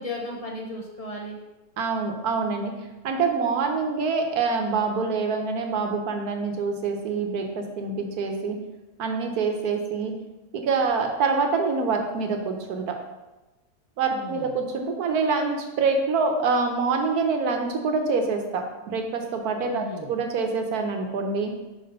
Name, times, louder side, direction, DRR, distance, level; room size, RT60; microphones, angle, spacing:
voice 1, 0.0-1.4 14.1-14.6 19.7-20.1, left 1 dB, 40° left, 0 dB, 0.5 m, -35 dB
voice 2, 1.8-2.7 3.0-8.6 9.0-10.1 10.5-12.9 14.0-21.5, right 4 dB, 75° right, 4 dB, 1.3 m, -26 dB
5.0 x 4.2 x 5.3 m, 1.1 s
omnidirectional pair, 1.7 m